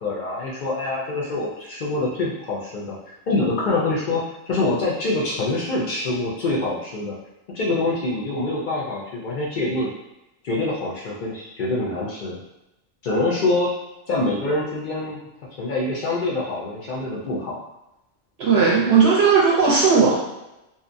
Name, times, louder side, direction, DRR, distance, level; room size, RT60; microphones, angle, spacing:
voice 1, 0.0-7.1 7.5-9.9 10.4-12.4 13.0-13.7 14.1-15.2 15.6-17.6, left 2 dB, 75° left, -4 dB, 0.4 m, -25 dB
voice 2, 18.4-20.1, right 5 dB, 65° right, -5 dB, 0.7 m, -16 dB
2.7 x 2.1 x 2.5 m, 0.94 s
omnidirectional pair, 1.3 m